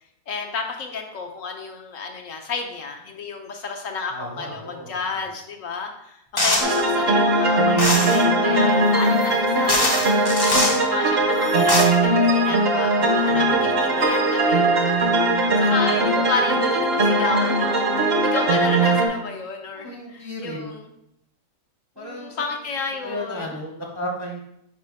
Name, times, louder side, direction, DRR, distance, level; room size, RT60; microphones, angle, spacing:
voice 1, 0.3-10.1 10.7-14.7 15.6-17.9 18.3-20.9 22.0-23.6, left 4 dB, 65° left, 3 dB, 1.0 m, -31 dB
voice 2, 4.1-5.3 13.2-13.8 19.7-20.7 22.0-22.4 23.0-24.4, equal, 25° right, -1 dB, 0.6 m, -34 dB
sound 1, 6.4-6.8 7.8-8.2 9.2-9.3 9.7-10.8 11.4-11.8, left 1 dB, 25° left, 0.6 m, -22 dB
sound 2, 6.6-19.1, right 2 dB, 45° right, 1.0 m, -20 dB
4.8 x 4.3 x 4.7 m, 0.79 s
omnidirectional pair, 1.6 m